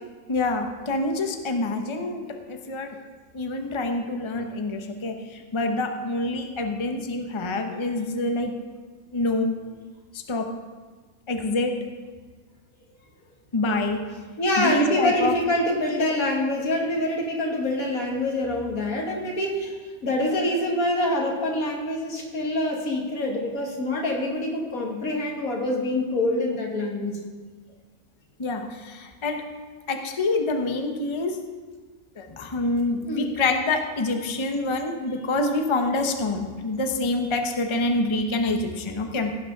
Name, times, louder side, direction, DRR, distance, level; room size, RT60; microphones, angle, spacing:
voice 1, 0.3-3.0 3.3-8.6 9.1-9.6 10.1-10.5 11.3-11.8 13.5-14.0 14.6-15.4 28.4-29.4 29.9-31.4 32.2-39.4, left 2 dB, 25° left, 5 dB, 0.8 m, -26 dB
voice 2, 14.4-19.7 20.0-27.2 33.0-33.3, left 1 dB, 85° left, 0 dB, 2.2 m, -25 dB
16.5 x 6.1 x 5.3 m, 1.4 s
omnidirectional pair, 1.5 m